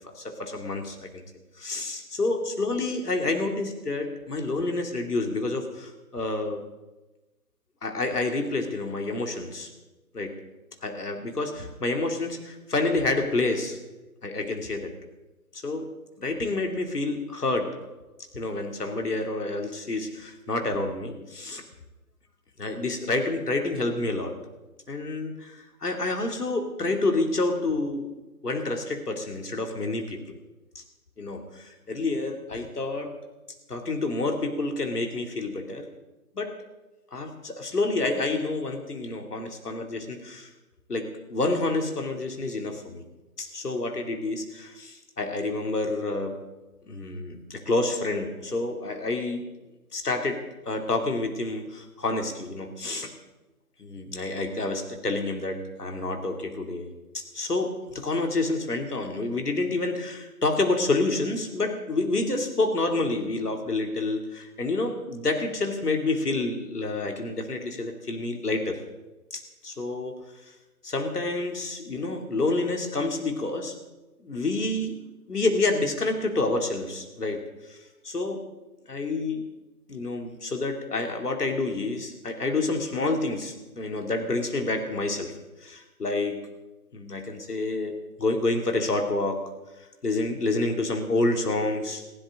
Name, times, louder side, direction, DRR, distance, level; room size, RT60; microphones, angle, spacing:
voice 1, 0.2-1.2 1.6-6.6 7.8-9.7 10.1-10.3 10.8-13.8 14.2-14.9 15.5-15.9 16.2-17.8 18.3-21.6 22.6-24.3 24.9-28.1 28.4-30.2 30.7-30.8 31.2-33.1 33.7-35.9 36.3-36.5 37.1-40.5 40.9-43.0 43.4-46.4 46.9-49.4 49.9-53.1 53.8-68.8 69.3-70.2 70.4-70.5 70.8-73.8 74.2-75.0 75.3-77.4 77.7-77.8 78.0-78.4 78.9-79.4 79.9-85.3 85.6-86.4 86.9-87.9 88.2-89.5 90.0-92.0, left 2 dB, 90° left, 3 dB, 3.0 m, -28 dB
20.5 x 15.5 x 3.8 m, 1.1 s
hypercardioid pair, 170°, 45 cm